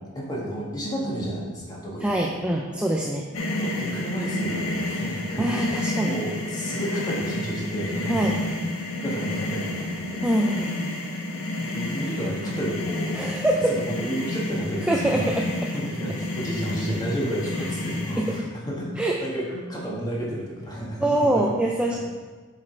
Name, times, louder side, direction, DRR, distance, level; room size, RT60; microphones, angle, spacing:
voice 1, 0.1-2.3 3.6-8.3 9.0-10.2 11.6-13.2 13.7-15.3 15.7-21.4, equal, 20° left, -4 dB, 1.7 m, -31 dB
voice 2, 2.0-3.3 5.4-6.2 8.1-8.4 10.2-10.7 13.1-13.8 14.8-15.7 18.2-18.3 19.0-19.2 21.0-22.0, right 1 dB, 5° right, -1 dB, 0.4 m, -24 dB
sound 1, 3.3-18.4, left 1 dB, 70° left, 1.1 m, -30 dB
7.4 x 5.0 x 4.4 m, 1.4 s
head